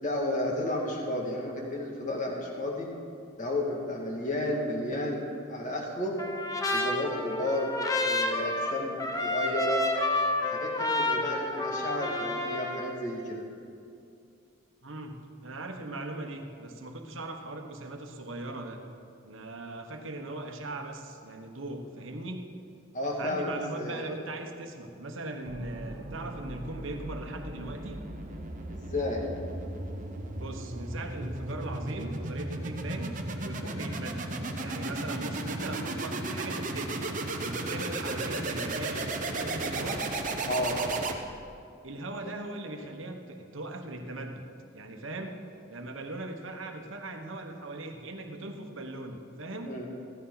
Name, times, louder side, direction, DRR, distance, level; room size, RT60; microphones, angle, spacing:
voice 1, 0.0-2.9 3.4-6.2 6.7-9.8 10.4-13.4 22.9-23.5 23.8-24.2 28.7-29.3 40.4-40.8 42.2-42.3 49.6-49.9, left 1 dB, 35° left, -1 dB, 2.1 m, -32 dB
Trumpet, 6.2-12.9, left 2 dB, 15° left, 0.9 m, -30 dB
voice 2, 14.8-18.8 19.2-22.5 23.2-28.0 30.4-33.1 33.4-37.0 37.4-40.0 41.8-44.5 44.7-45.4 45.7-49.7, right 2 dB, 65° right, 4 dB, 1.2 m, -39 dB
sound 1, 25.5-41.6, right 2 dB, 40° right, 0.9 m, -35 dB
15.0 x 14.5 x 4.0 m, 2.5 s
head